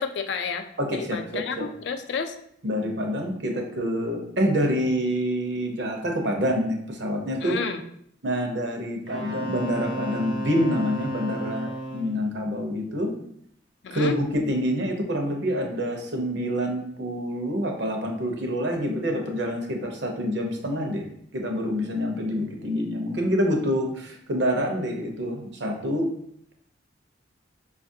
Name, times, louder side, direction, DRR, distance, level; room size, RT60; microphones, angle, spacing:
voice 1, 0.0-0.6 0.9-2.4 7.4-7.8 13.8-14.2, left 5 dB, 65° left, 7 dB, 0.4 m, -31 dB
voice 2, 0.8-1.7 2.6-7.6 8.2-13.1 13.9-21.1 21.3-26.1, equal, 70° right, 2 dB, 0.7 m, -27 dB
Wind instrument woodwind instrument, 9.1-12.2, right 1 dB, 85° right, 1.1 m, -33 dB
5.0 x 2.4 x 2.6 m, 0.69 s
head